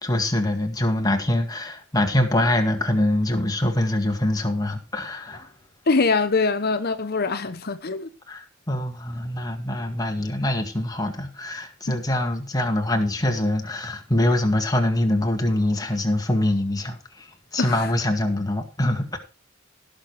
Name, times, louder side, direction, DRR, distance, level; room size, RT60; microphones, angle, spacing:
voice 1, 0.0-5.5 8.3-19.2, left 1 dB, 20° left, 1.9 m, -24 dB
voice 2, 5.9-8.1 11.9-12.0 17.6-17.9, left 4 dB, 50° left, 0.9 m, -23 dB
17.5 x 6.7 x 4.5 m
head